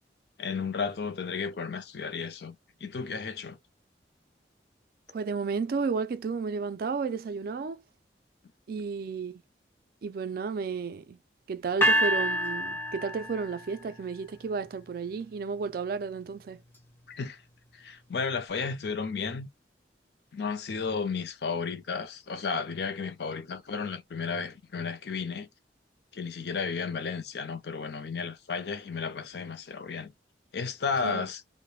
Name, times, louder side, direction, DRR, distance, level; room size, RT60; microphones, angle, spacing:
voice 1, 0.4-3.6 17.1-17.4 17.7-19.5 20.3-25.5 26.1-30.1 30.5-31.4, left 5 dB, 65° left, 0.5 m, -33 dB
voice 2, 5.1-7.8 8.7-9.4 10.0-11.2 11.5-16.6 31.0-31.3, right 5 dB, 55° right, 0.3 m, -32 dB
sound 1, 11.8-13.9, equal, 15° left, 0.5 m, -27 dB
2.3 x 2.1 x 3.1 m
head